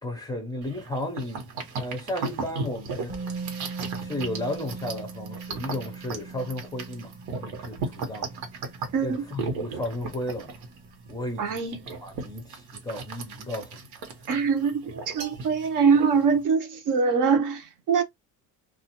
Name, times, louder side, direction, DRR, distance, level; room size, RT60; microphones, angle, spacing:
voice 1, 0.0-3.1 4.0-8.3 9.0-10.5 11.1-13.9, left 1 dB, 10° left, 0.5 m, -34 dB
sound 1, 0.6-16.4, right 4 dB, 80° right, 1.1 m, -37 dB
Musical instrument, 3.1-11.0 11.3-11.4, right 4 dB, 20° right, 0.8 m, -41 dB
voice 2, 8.9-9.2 11.4-11.8 14.3-18.0, right 5 dB, 55° right, 0.8 m, -23 dB
2.4 x 2.4 x 2.8 m
cardioid pair, 155°, 37 cm